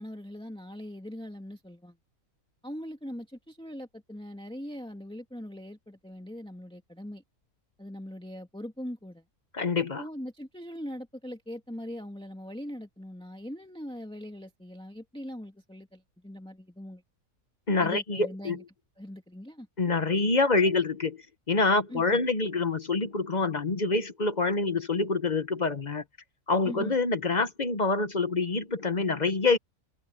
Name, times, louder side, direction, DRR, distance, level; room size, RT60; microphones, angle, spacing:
voice 1, 0.0-2.0 2.6-7.2 7.8-9.2 10.0-17.0 17.8-18.6 19.0-19.7 21.9-22.2 26.6-27.0, equal, 5° left, 2.2 m, -41 dB
voice 2, 9.5-10.0 17.7-18.6 19.8-21.2 21.5-26.0 26.5-29.6, left 3 dB, 35° left, 1.1 m, -26 dB
open air
omnidirectional pair, 1.5 m